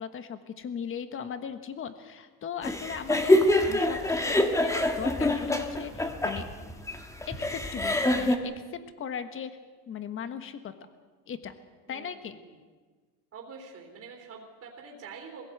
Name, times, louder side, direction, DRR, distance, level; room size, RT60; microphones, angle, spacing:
voice 1, 0.0-6.4 7.2-9.6 9.9-10.7 11.3-11.5 11.9-12.4, left 7 dB, 30° left, 10 dB, 1.4 m, -38 dB
sound 1, 2.6-8.4, left 1 dB, 5° left, 1.5 m, -25 dB
voice 2, 13.3-15.5, right 5 dB, 35° right, 0 dB, 3.4 m, -45 dB
22.5 x 16.5 x 8.0 m, 1.4 s
cardioid pair, 150°, 41 cm